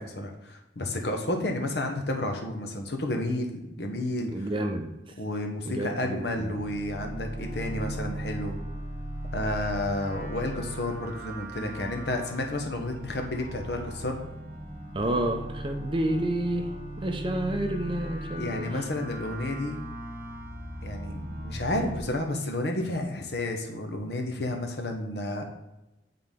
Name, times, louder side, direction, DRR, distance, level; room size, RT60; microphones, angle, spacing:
voice 1, 0.0-4.5 5.2-8.6 9.3-14.2 18.4-19.8 20.8-25.4, left 1 dB, 65° left, 3 dB, 1.0 m, -31 dB
voice 2, 4.3-4.9 5.7-6.5 14.9-16.7 17.0-18.7, right 1 dB, 30° right, 5 dB, 0.6 m, -29 dB
sound 1, 6.1-22.0, right 1 dB, 50° right, 0.9 m, -38 dB
8.5 x 3.8 x 3.7 m, 0.94 s
head